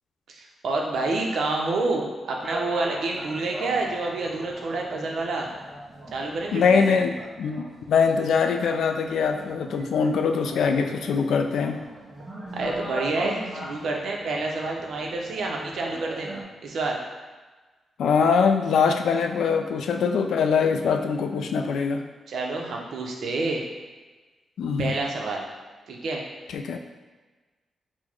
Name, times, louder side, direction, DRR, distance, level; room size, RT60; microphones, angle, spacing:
voice 1, 0.3-5.5 6.1-6.9 12.5-13.3 13.6-16.3 16.6-17.0 22.3-23.7 24.8-25.4 25.9-26.2, right 3 dB, 70° right, 0 dB, 0.6 m, -28 dB
sound 1, 2.4-16.4, right 1 dB, 10° right, 0.8 m, -40 dB
voice 2, 6.5-11.8 18.0-22.0 24.6-24.9 26.5-26.8, left 5 dB, 80° left, 6 dB, 0.3 m, -23 dB
4.4 x 2.1 x 4.3 m, 1.3 s
wide cardioid pair, 140°, 0 cm